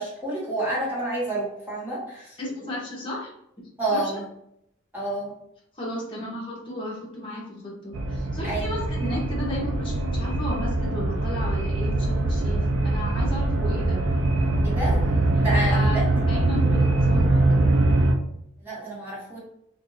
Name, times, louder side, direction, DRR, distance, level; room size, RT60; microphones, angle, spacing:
voice 1, 0.0-2.4 3.8-4.2 4.9-5.3 8.4-8.7 14.6-16.0 18.6-19.4, right 1 dB, 10° right, -7 dB, 1.2 m, -29 dB
voice 2, 2.4-3.3 3.9-4.0 5.7-14.0 15.3-17.7, left 1 dB, 25° left, -5 dB, 1.0 m, -34 dB
sound 1, 7.9-18.1, right 2 dB, 75° right, 0.4 m, -23 dB
2.6 x 2.6 x 3.9 m, 0.77 s
head